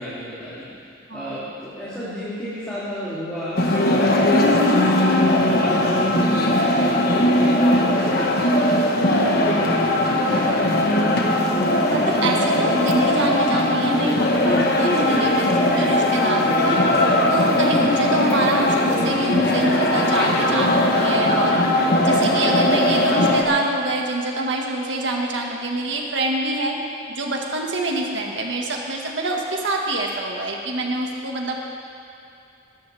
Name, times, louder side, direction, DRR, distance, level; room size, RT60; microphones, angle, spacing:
voice 1, 0.0-4.9 5.3-7.1 7.5-11.0, equal, 5° left, -13 dB, 3.1 m, -33 dB
sound 1, 3.6-23.4, left 1 dB, 50° left, 1.4 m, -19 dB
voice 2, 11.9-16.8 17.3-21.6 22.0-26.8 27.1-31.6, right 1 dB, 70° right, 0 dB, 1.8 m, -25 dB
21.0 x 12.0 x 3.5 m, 2.7 s
head